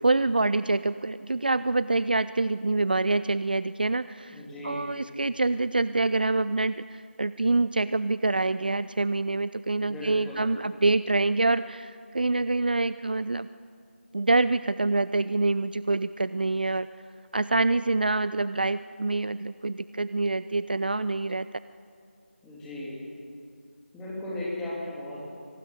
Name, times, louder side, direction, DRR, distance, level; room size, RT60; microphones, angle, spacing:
voice 1, 0.0-13.5 14.1-16.9 17.3-21.5, right 3 dB, 45° right, 15 dB, 0.5 m, -26 dB
voice 2, 4.3-4.9 9.8-10.4 22.4-22.9 23.9-25.2, left 1 dB, 5° left, -6 dB, 3.1 m, -36 dB
24.0 x 19.5 x 9.9 m, 2.4 s
figure-of-eight pair, 165°, 7 cm